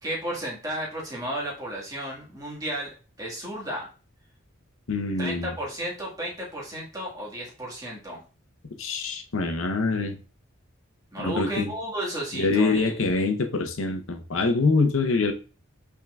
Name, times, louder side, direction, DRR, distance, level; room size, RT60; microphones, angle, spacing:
voice 1, 0.0-3.9 5.2-8.2 11.1-13.0, right 1 dB, 15° right, -4 dB, 1.6 m, -33 dB
voice 2, 4.9-5.6 8.8-10.2 11.2-11.7 12.3-15.3, left 3 dB, 80° left, 6 dB, 0.7 m, -25 dB
5.7 x 3.7 x 2.3 m, 0.35 s
head